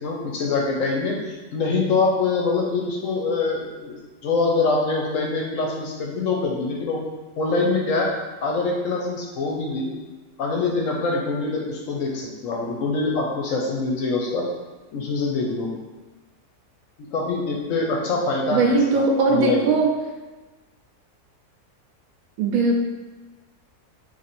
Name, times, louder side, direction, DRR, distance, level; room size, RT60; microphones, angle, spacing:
voice 1, 0.0-4.0 4.2-7.0 7.4-8.1 8.4-9.9 10.4-14.4 14.9-15.7 17.1-19.7, left 3 dB, 70° left, -1 dB, 0.9 m, -24 dB
voice 2, 18.5-19.9 22.4-22.8, right 3 dB, 75° right, 1 dB, 1.0 m, -19 dB
3.0 x 2.6 x 4.1 m, 1.2 s
omnidirectional pair, 1.6 m